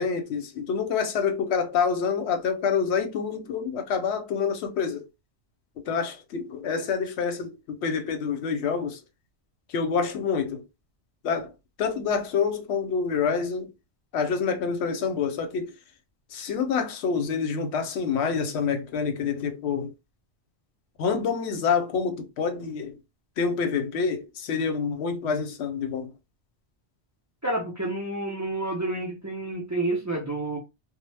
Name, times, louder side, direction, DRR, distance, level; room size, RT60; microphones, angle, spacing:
voice 1, 0.0-5.1 5.8-9.0 9.7-10.7 11.2-11.5 11.8-13.7 14.1-15.7 16.3-19.9 21.0-23.0 23.4-26.1, left 6 dB, 90° left, 0.9 m, -27 dB
voice 2, 27.4-30.6, right 2 dB, 30° right, 0.3 m, -29 dB
2.0 x 2.0 x 3.1 m
omnidirectional pair, 1.1 m